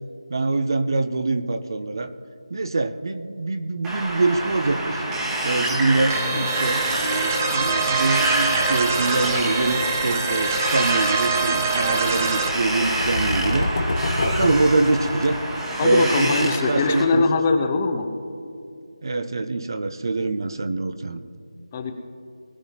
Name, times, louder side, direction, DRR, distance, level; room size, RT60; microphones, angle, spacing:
voice 1, 0.3-2.1 2.5-5.0 5.4-13.7 14.2-15.4 15.8-17.2 19.0-21.2, right 3 dB, 45° right, 10 dB, 0.7 m, -24 dB
Wind, 3.8-17.0, right 1 dB, 10° right, 1.2 m, -27 dB
sound 1, 6.1-12.5, right 4 dB, 25° right, 1.0 m, -24 dB
sound 2, 12.7-15.5, left 2 dB, 40° left, 1.1 m, -27 dB
voice 2, 15.8-18.1 21.7-21.9, left 4 dB, 20° left, 6 dB, 0.7 m, -22 dB
20.5 x 10.5 x 3.0 m, 2.4 s
figure-of-eight pair, 160°, 3 cm